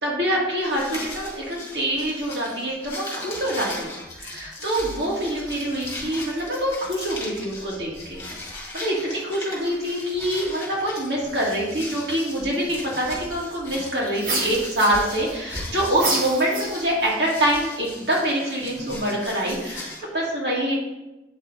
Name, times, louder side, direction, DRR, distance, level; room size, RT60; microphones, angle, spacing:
voice 1, 0.0-8.2 8.7-20.8, right 1 dB, 75° right, -4 dB, 2.3 m, -25 dB
sound 1, 0.6-20.0, left 1 dB, 15° left, 2.6 m, -38 dB
sound 2, 14.2-15.4 15.9-17.1, right 2 dB, 50° right, 1.4 m, -28 dB
8.7 x 5.7 x 3.9 m, 1.0 s
head